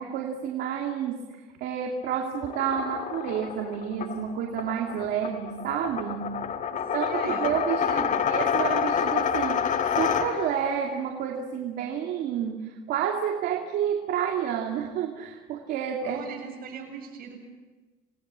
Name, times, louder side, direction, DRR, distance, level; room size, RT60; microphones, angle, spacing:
voice 1, 0.0-6.4 6.9-16.2, right 8 dB, 80° right, 1 dB, 2.5 m, -30 dB
sound 1, 2.4-10.7, left 7 dB, 50° left, 1.5 m, -28 dB
voice 2, 6.7-8.2 16.0-17.4, right 6 dB, 60° right, 3 dB, 7.8 m, -40 dB
28.0 x 20.0 x 7.5 m, 1.3 s
cardioid pair, 110°, 17 cm